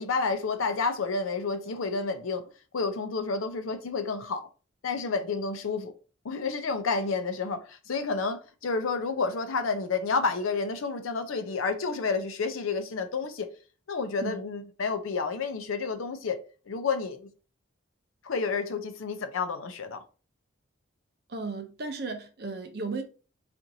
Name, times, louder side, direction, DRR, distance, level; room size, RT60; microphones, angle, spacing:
voice 1, 0.0-2.4 2.7-4.5 4.8-5.9 6.2-13.5 13.9-16.4 16.7-17.3 18.2-20.0, left 4 dB, 90° left, 0.5 m, -30 dB
voice 2, 21.3-23.0, right 3 dB, 50° right, 0.6 m, -35 dB
4.3 x 2.5 x 2.7 m
head